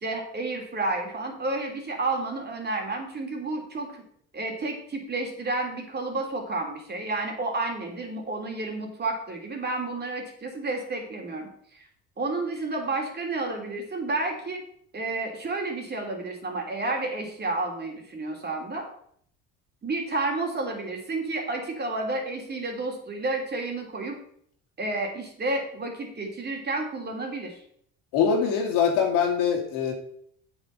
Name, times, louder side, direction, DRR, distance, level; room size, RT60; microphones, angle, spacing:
voice 1, 0.0-4.0 4.3-11.8 12.2-14.6 14.9-18.9 19.8-24.2 24.8-27.6, right 2 dB, 30° right, 2 dB, 3.0 m, -31 dB
voice 2, 28.1-29.9, left 6 dB, 80° left, 2 dB, 2.6 m, -23 dB
8.0 x 7.4 x 5.5 m, 0.65 s
supercardioid pair, 95°, 33 cm